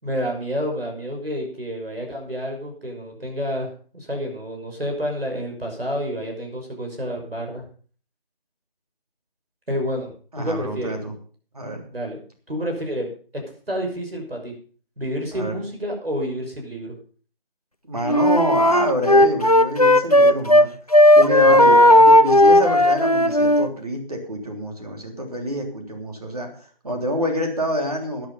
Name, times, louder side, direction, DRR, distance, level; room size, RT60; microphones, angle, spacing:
voice 1, 0.0-7.7 9.7-11.0 11.9-12.2 12.5-13.4 13.7-14.5 15.0-16.9 21.5-22.0, equal, 80° right, 2 dB, 6.3 m, -29 dB
voice 2, 10.3-11.1 11.5-11.8 15.3-15.6 17.9-20.7 21.1-28.3, equal, 40° right, 2 dB, 3.5 m, -27 dB
Wind instrument woodwind instrument, 18.1-20.7 20.9-23.7, left 1 dB, 40° left, 0.5 m, -14 dB
13.0 x 11.0 x 5.6 m, 0.42 s
figure-of-eight pair, 175°, 29 cm